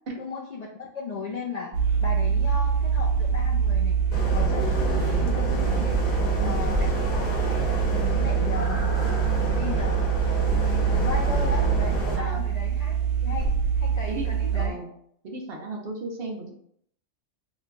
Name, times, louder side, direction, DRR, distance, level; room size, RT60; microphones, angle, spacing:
voice 1, 0.2-1.7 2.0-4.0 4.3-6.0 6.4-7.6 8.0-8.9 9.5-13.5 13.8-14.8, left 4 dB, 85° left, -2 dB, 0.3 m, -36 dB
sound 1, 1.7-14.7, right 7 dB, 75° right, 1.0 m, -25 dB
sound 2, 4.1-12.2, equal, 45° left, 1.0 m, -29 dB
sound 3, 4.4-12.3 12.6-12.7, left 1 dB, 35° right, 1.4 m, -42 dB
voice 2, 6.4-6.7 12.2-12.4 14.1-14.3 14.5-14.9 15.2-16.5, right 2 dB, 55° right, 0 dB, 0.8 m, -34 dB
3.1 x 2.2 x 3.8 m, 0.67 s
omnidirectional pair, 1.3 m